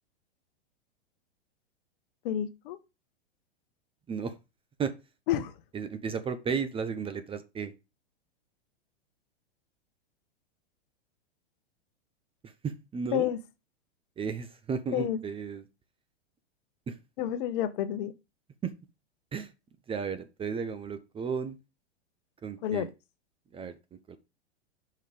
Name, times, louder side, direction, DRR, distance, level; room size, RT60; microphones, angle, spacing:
voice 1, 2.2-2.8 5.3-5.5 13.1-13.4 14.9-15.2 17.2-18.1 22.6-22.9, left 11 dB, 55° left, 1.1 m, -29 dB
voice 2, 5.7-7.7 12.4-13.3 14.2-15.6 16.9-17.0 18.6-18.7 19.3-19.5 19.9-21.6 22.4-22.9 23.5-24.2, right 6 dB, 15° right, 0.6 m, -34 dB
5.5 x 5.5 x 5.0 m
hypercardioid pair, 110°, 32 cm